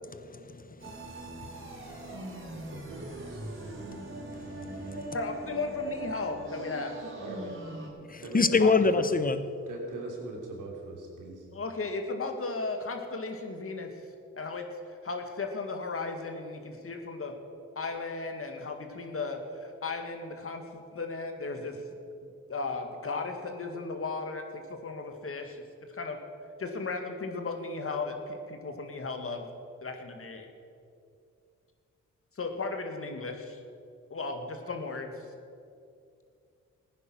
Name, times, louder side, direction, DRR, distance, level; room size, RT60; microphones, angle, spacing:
voice 1, 0.2-2.1 4.4-5.1 8.1-9.4, left 4 dB, 30° left, 12 dB, 1.0 m, -28 dB
sound 1, 0.8-7.9, right 2 dB, 40° right, 3.7 m, -41 dB
voice 2, 1.9-3.7 7.1-7.6 8.2-8.9 9.7-11.5, right 2 dB, 90° right, 0 dB, 3.0 m, -42 dB
voice 3, 5.1-7.0 8.5-8.7 11.5-13.9 14.3-17.3 17.8-21.8 22.5-25.6 25.9-26.2 26.6-29.5 29.8-30.5 32.4-33.6 34.1-35.3, left 3 dB, 45° left, 4 dB, 2.0 m, -35 dB
15.5 x 9.7 x 6.2 m, 2.4 s
cardioid pair, 65°, 31 cm